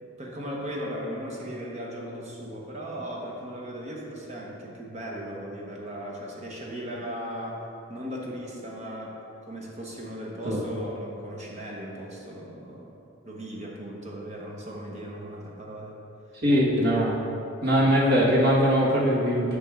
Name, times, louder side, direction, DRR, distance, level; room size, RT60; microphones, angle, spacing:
voice 1, 0.0-7.6 7.9-12.9 13.2-16.0, equal, 35° right, -2 dB, 1.1 m, -37 dB
voice 2, 16.4-17.1 17.6-19.6, equal, 50° right, -5 dB, 1.6 m, -21 dB
8.7 x 5.7 x 3.7 m, 2.8 s
head